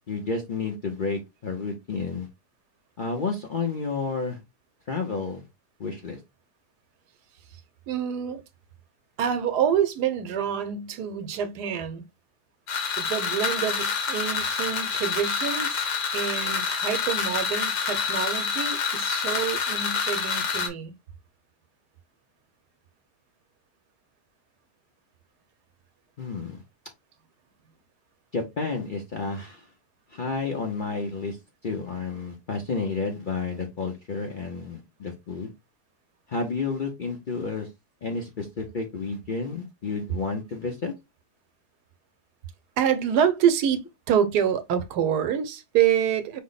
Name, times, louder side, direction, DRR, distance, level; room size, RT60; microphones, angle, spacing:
voice 1, 0.1-2.3 3.0-4.4 4.9-5.4 5.8-6.2 26.2-26.6 28.3-29.7 30.1-31.4 31.6-35.5 36.3-37.7 38.0-40.9, left 4 dB, 50° left, 0.6 m, -31 dB
voice 2, 7.9-8.4 9.2-12.0 13.0-15.9 16.1-20.9 42.8-43.8 44.1-46.4, right 8 dB, 80° right, 1.2 m, -26 dB
sound 1, 12.7-20.7, left 5 dB, 85° left, 1.8 m, -27 dB
5.3 x 2.1 x 3.9 m
omnidirectional pair, 1.7 m